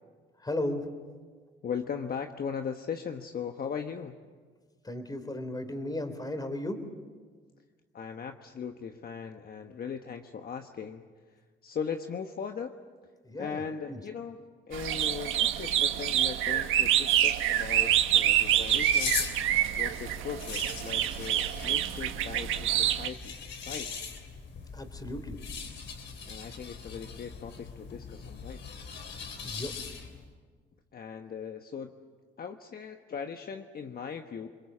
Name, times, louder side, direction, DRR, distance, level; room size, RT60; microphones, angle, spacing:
voice 1, 0.4-0.9 4.8-6.8 13.2-13.6 13.9-14.0 24.7-25.4 29.4-29.7, left 1 dB, 20° left, 8 dB, 3.4 m, -35 dB
voice 2, 1.6-4.2 7.9-12.7 13.4-14.4 14.7-19.3 19.8-23.4 23.7-24.0 26.3-28.6 30.9-31.9 32.4-34.5, left 6 dB, 50° left, 5 dB, 1.2 m, -39 dB
sound 1, 14.7-23.1, right 11 dB, 90° right, 1.3 m, -27 dB
sound 2, 17.6-30.3, left 6 dB, 65° left, 3.5 m, -40 dB
28.5 x 21.5 x 7.4 m, 1.5 s
cardioid pair, 90°, 20 cm